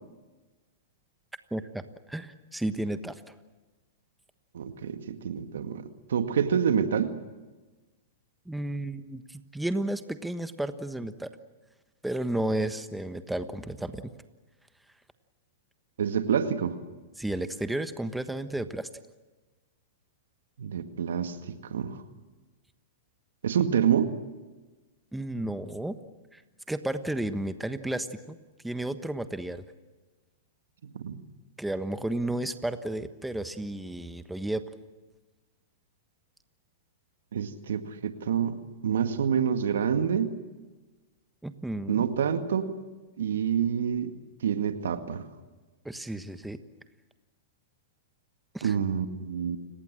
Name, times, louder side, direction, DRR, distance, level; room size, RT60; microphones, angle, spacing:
voice 1, 1.5-3.2 8.5-11.3 12.0-14.1 17.2-18.9 25.1-26.0 26.3-26.4 26.7-28.4 28.6-29.6 31.6-34.6 41.4-42.1 45.8-46.6 48.5-48.8, right 1 dB, 5° right, 10 dB, 1.3 m, -32 dB
voice 2, 4.5-5.8 6.1-7.1 16.0-16.8 20.6-22.0 23.4-24.1 30.9-31.2 37.3-40.3 41.9-42.7 43.2-44.1 44.4-45.3 48.6-49.6, right 8 dB, 80° right, 8 dB, 1.9 m, -27 dB
30.0 x 18.5 x 7.7 m, 1.2 s
hypercardioid pair, 115°, 0 cm